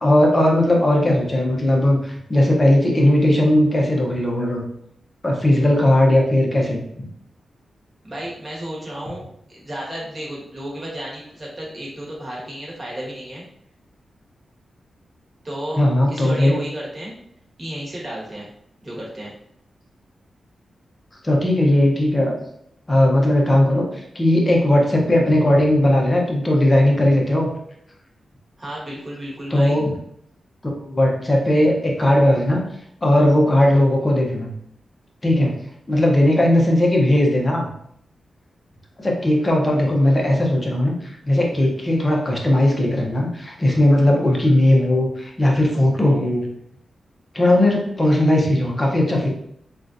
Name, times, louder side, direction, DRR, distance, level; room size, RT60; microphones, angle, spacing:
voice 1, 0.0-4.6 5.2-7.1 15.8-16.5 21.2-22.3 22.9-27.5 29.5-29.8 30.6-32.6 33.0-34.5 35.2-35.5 35.9-37.7 39.0-40.9 41.3-46.5 47.3-49.3, left 1 dB, 20° left, -1 dB, 0.7 m, -17 dB
voice 2, 8.0-9.2 9.5-13.4 15.4-15.8 16.1-17.1 17.6-18.5 18.8-19.3 28.6-29.8, right 1 dB, 25° right, -5 dB, 1.2 m, -32 dB
3.6 x 2.4 x 2.6 m, 0.71 s
wide cardioid pair, 135°, 0 cm